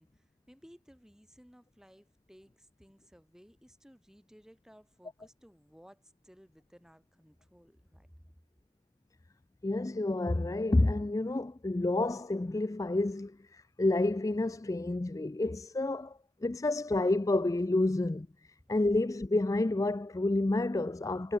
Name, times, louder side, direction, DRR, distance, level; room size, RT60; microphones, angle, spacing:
voice 1, 0.0-8.1, equal, 5° right, 4.2 m, -59 dB
voice 2, 9.6-18.3 18.7-21.4, left 2 dB, 15° left, 0.3 m, -29 dB
head